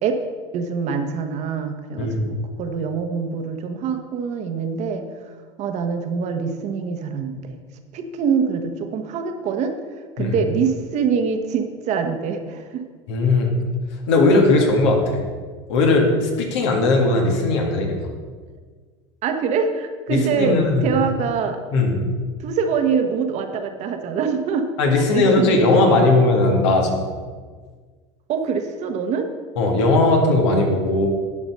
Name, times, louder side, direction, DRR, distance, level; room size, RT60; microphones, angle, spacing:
voice 1, 0.5-5.0 5.6-7.6 7.9-9.7 10.2-12.8 19.2-21.6 22.4-24.7 24.9-26.1 28.3-29.3, right 6 dB, 50° right, 6 dB, 1.1 m, -24 dB
voice 2, 13.1-13.5 14.1-15.0 15.7-18.0 20.1-20.9 21.7-22.1 24.8-27.0 29.6-31.1, left 2 dB, 75° left, 2 dB, 1.9 m, -18 dB
11.0 x 4.9 x 5.5 m, 1.5 s
supercardioid pair, 100°, 15 cm